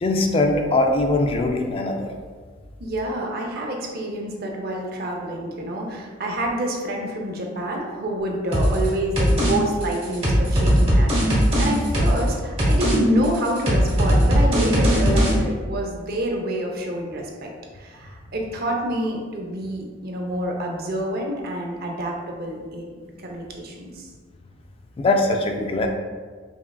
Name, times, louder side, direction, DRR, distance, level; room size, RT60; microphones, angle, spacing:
voice 1, 0.0-2.1 25.0-25.9, left 2 dB, 30° left, 3 dB, 0.3 m, -21 dB
voice 2, 2.8-24.1, right 1 dB, 50° right, 0 dB, 0.6 m, -27 dB
sound 1, 8.5-8.9 9.2-9.5 9.8-12.3 12.6-13.0 13.2-15.3, equal, 30° right, 1.0 m, -19 dB
5.5 x 2.4 x 2.3 m, 1.5 s
head